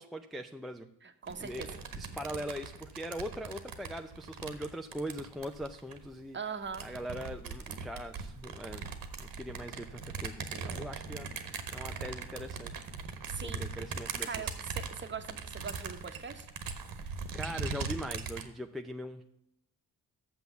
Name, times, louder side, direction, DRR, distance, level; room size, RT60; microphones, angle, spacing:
voice 1, 0.0-0.9 1.4-6.4 6.8-8.9 9.2-12.8 13.3-14.6 17.0-19.3, equal, ahead, 5 dB, 0.5 m, -41 dB
voice 2, 1.0-1.7 6.3-6.9 13.3-13.7 14.2-16.5, right 5 dB, 30° right, 8 dB, 1.1 m, -41 dB
sound 1, 1.3-6.1 6.6-18.4, right 5 dB, 65° right, 1.3 m, -40 dB
7.0 x 6.3 x 6.8 m, 0.83 s
cardioid pair, 80°, 38 cm